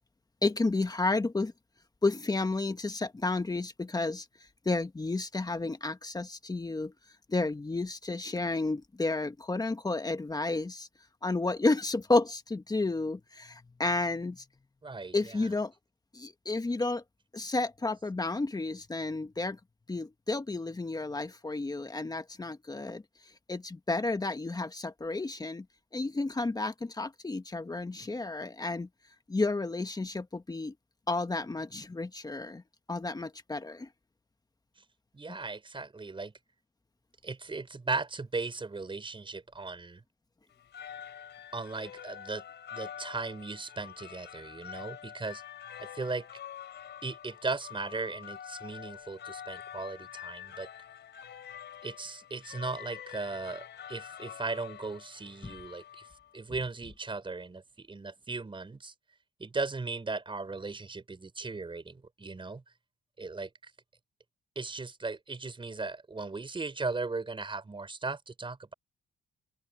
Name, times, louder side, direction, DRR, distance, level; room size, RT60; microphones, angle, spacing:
voice 1, 0.4-1.5 2.0-4.2 4.6-6.9 7.3-10.9 11.2-14.4 15.1-15.7 16.1-17.0 17.3-19.6 19.9-23.0 23.5-25.6 25.9-28.9 29.3-30.7 31.1-32.6 32.9-33.9, left 3 dB, 20° left, 1.5 m, -31 dB
voice 2, 14.8-15.5 35.1-36.3 37.2-40.0 41.5-42.4 42.7-45.4 45.8-46.3 47.0-50.7 51.8-56.1 56.3-58.9 59.4-62.6 63.2-63.7 64.6-68.7, right 3 dB, 25° right, 5.4 m, -37 dB
sound 1, 40.5-56.4, left 9 dB, 65° left, 4.0 m, -46 dB
open air
cardioid pair, 90°, 20 cm